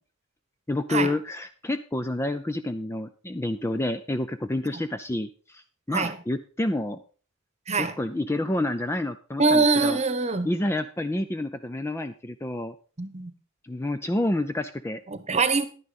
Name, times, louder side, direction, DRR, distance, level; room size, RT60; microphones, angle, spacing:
voice 1, 0.7-7.0 7.8-10.0 10.4-12.7 13.6-15.0, left 1 dB, 10° left, 0.4 m, -29 dB
voice 2, 9.4-10.5 13.0-13.3 15.1-15.6, right 3 dB, 30° right, 1.1 m, -23 dB
10.5 x 9.8 x 4.1 m
head